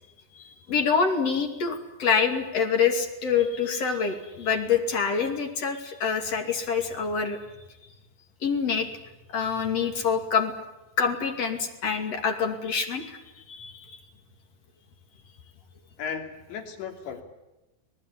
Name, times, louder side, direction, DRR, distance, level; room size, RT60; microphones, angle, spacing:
voice 1, 0.3-7.4 8.4-8.9 9.3-10.5 11.0-13.2 13.5-14.0, left 6 dB, 40° left, 5 dB, 3.0 m, -26 dB
voice 2, 16.0-17.2, left 6 dB, 80° left, 4 dB, 5.1 m, -35 dB
25.5 x 19.0 x 10.0 m, 1.0 s
omnidirectional pair, 5.2 m